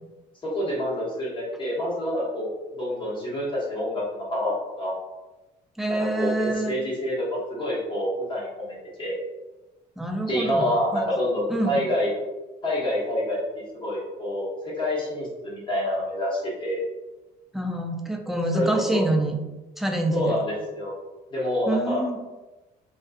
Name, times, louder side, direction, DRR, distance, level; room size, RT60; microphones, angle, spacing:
voice 1, 0.4-4.9 5.9-9.1 10.2-12.1 12.6-16.8 18.5-19.0 20.1-20.9 21.3-22.0, left 1 dB, 30° left, -5 dB, 1.0 m, -27 dB
voice 2, 5.8-6.8 10.0-11.0 11.5-11.7 17.5-19.4 19.8-20.4 21.7-22.2, right 1 dB, ahead, 1 dB, 0.3 m, -26 dB
2.6 x 2.2 x 2.3 m, 1.1 s
cardioid pair, 110°, 17 cm